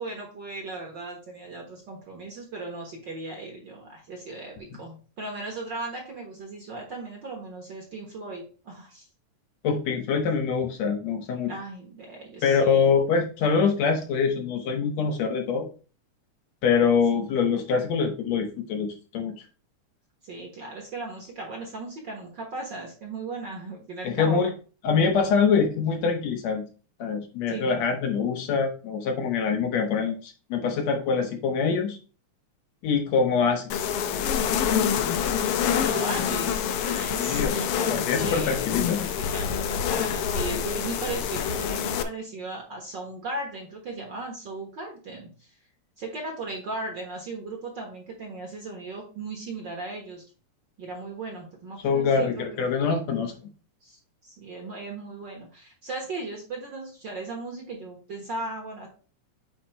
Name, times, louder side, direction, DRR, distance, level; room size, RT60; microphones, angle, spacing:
voice 1, 0.0-9.1 10.1-10.2 11.5-12.9 20.2-24.4 27.5-27.8 35.7-45.5 46.0-50.2 50.8-52.7 53.8-58.9, right 2 dB, 50° right, 1 dB, 1.6 m, -37 dB
voice 2, 9.6-11.5 12.4-15.7 16.6-19.3 24.0-24.5 24.8-26.6 27.0-32.0 32.8-33.8 37.2-37.6 37.9-39.1 51.8-53.3, left 5 dB, 70° left, 4 dB, 2.0 m, -24 dB
sound 1, 33.7-42.0, left 8 dB, 90° left, 1.3 m, -26 dB
8.6 x 3.0 x 4.4 m, 0.36 s
omnidirectional pair, 3.4 m